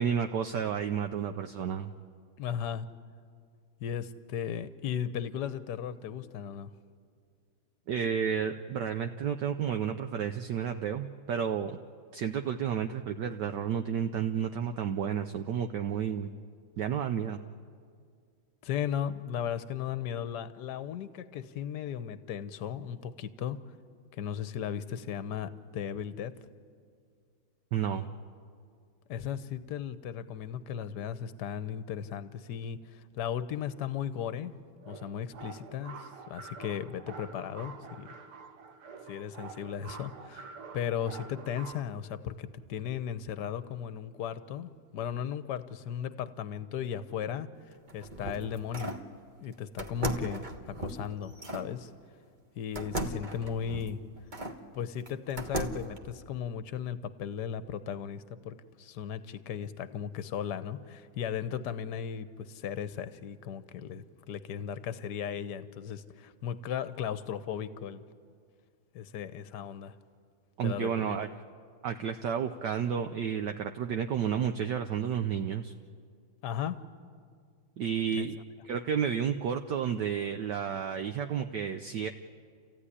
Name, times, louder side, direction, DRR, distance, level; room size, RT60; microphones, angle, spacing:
voice 1, 0.0-1.9 7.9-11.8 12.1-16.3 16.8-17.4 27.7-28.1 70.6-71.4 71.8-75.7 77.8-78.4 78.6-82.1, right 8 dB, 65° right, 6 dB, 1.2 m, -31 dB
voice 2, 2.4-2.9 3.8-6.7 18.6-23.6 24.1-26.3 29.1-34.5 34.8-38.1 39.1-47.5 47.9-48.9 49.4-51.9 52.6-54.0 54.7-68.0 68.9-69.9 70.6-71.2 76.4-76.8 78.2-78.3, left 8 dB, 60° left, 12 dB, 1.3 m, -36 dB
sound 1, 34.8-41.8, right 5 dB, 85° right, 2.0 m, -47 dB
sound 2, 47.7-49.1 49.8-51.7 52.8-54.6 55.1-56.0, right 1 dB, 25° right, 1.1 m, -37 dB
29.5 x 15.0 x 9.9 m, 2.2 s
omnidirectional pair, 2.3 m